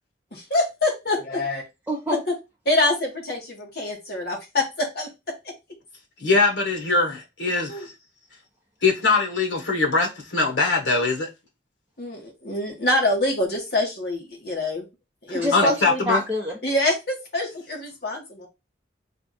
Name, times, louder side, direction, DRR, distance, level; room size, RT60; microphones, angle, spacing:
voice 1, 0.3-1.6 2.6-5.1 7.7-7.9 12.0-14.8 15.2-15.7 16.6-18.5, left 2 dB, 60° left, 1.5 m, -25 dB
voice 2, 1.9-2.2 15.3-16.6, equal, 10° right, 0.8 m, -25 dB
voice 3, 6.2-7.9 8.8-11.3 15.5-16.2, left 3 dB, 85° left, 1.2 m, -22 dB
3.4 x 2.4 x 4.1 m
head